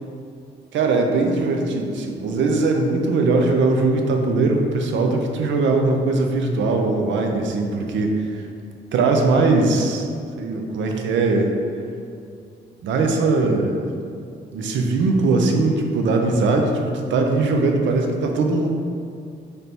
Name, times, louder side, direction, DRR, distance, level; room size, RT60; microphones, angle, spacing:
voice 1, 0.7-8.5 8.9-10.1 10.4-11.5 12.8-13.9 14.5-18.7, right 3 dB, 80° right, 3 dB, 0.5 m, -20 dB
3.3 x 2.7 x 4.3 m, 2.3 s
cardioid pair, 95°, 19 cm